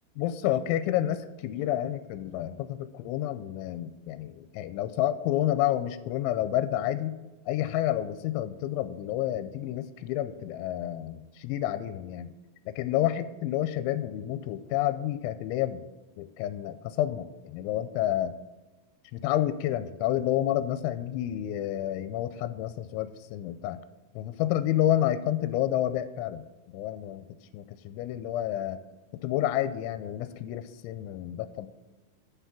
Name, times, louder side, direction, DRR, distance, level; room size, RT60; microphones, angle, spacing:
voice 1, 0.2-7.2 7.5-12.3 12.7-15.8 16.2-18.3 19.1-23.8 24.2-26.4 26.7-27.2 27.5-28.8 29.2-31.7, left 12 dB, 85° left, 11 dB, 2.9 m, -29 dB
10.5 x 5.7 x 6.1 m, 1.1 s
omnidirectional pair, 5.3 m